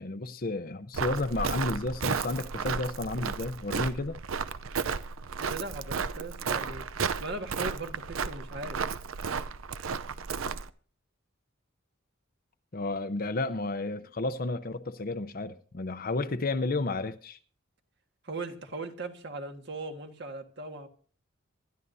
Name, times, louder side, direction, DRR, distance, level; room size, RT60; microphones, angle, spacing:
voice 1, 0.0-4.2 12.7-17.4, left 2 dB, 45° left, 0.7 m, -32 dB
Walk footsteps, 0.9-10.7, right 5 dB, 85° right, 0.6 m, -33 dB
voice 2, 5.4-6.8 7.2-8.8 18.2-20.9, right 2 dB, 55° right, 1.7 m, -39 dB
26.0 x 12.5 x 2.7 m
head